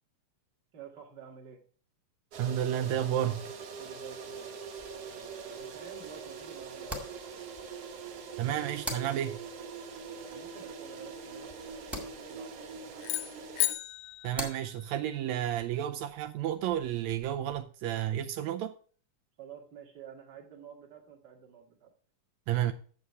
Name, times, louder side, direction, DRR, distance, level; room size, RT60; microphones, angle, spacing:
voice 1, 0.7-1.6 3.8-4.7 5.0-7.2 10.1-13.1 19.4-21.9, right 8 dB, 40° right, 1.8 m, -50 dB
sound 1, 2.3-13.7, right 5 dB, 60° right, 2.0 m, -43 dB
voice 2, 2.4-3.4 8.4-9.4 14.2-18.7 22.5-22.7, right 11 dB, 85° right, 1.6 m, -31 dB
sound 2, 4.8-17.6, left 1 dB, ahead, 1.0 m, -47 dB
sound 3, 13.0-15.3, left 17 dB, 80° left, 2.0 m, -35 dB
8.5 x 7.3 x 4.6 m
omnidirectional pair, 3.8 m